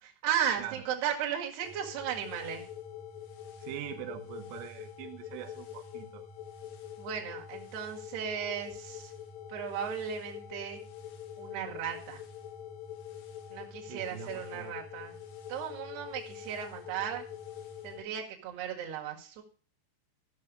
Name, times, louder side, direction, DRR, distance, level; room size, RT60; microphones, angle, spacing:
voice 1, 0.0-2.7 7.0-9.1 9.5-10.8 11.4-12.2 13.5-15.2 15.5-17.3 17.8-19.4, right 9 dB, 60° right, 1 dB, 3.6 m, -35 dB
sound 1, 1.6-18.0, left 9 dB, 80° left, 4.2 m, -45 dB
voice 2, 3.6-6.3 13.9-14.8, right 13 dB, 85° right, 6 dB, 3.5 m, -43 dB
15.0 x 6.4 x 4.8 m, 0.41 s
omnidirectional pair, 5.7 m